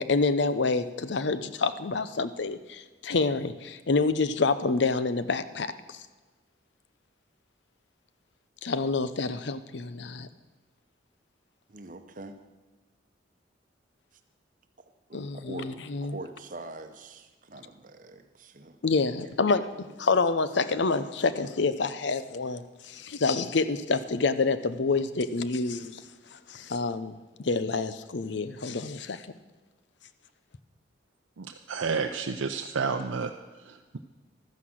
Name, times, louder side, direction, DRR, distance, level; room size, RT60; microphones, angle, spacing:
voice 1, 0.0-6.0 8.6-10.3 15.1-16.2 18.8-19.7 20.0-26.0 26.3-27.2 27.4-29.3, left 4 dB, 65° left, 13 dB, 0.6 m, -27 dB
voice 2, 11.7-12.4 14.8-15.7 16.0-18.8 19.7-19.9, right 2 dB, 45° right, 8 dB, 0.9 m, -44 dB
voice 3, 31.4-33.3 33.6-34.0, right 5 dB, 85° right, 4 dB, 0.6 m, -31 dB
13.0 x 9.7 x 6.3 m, 1.3 s
head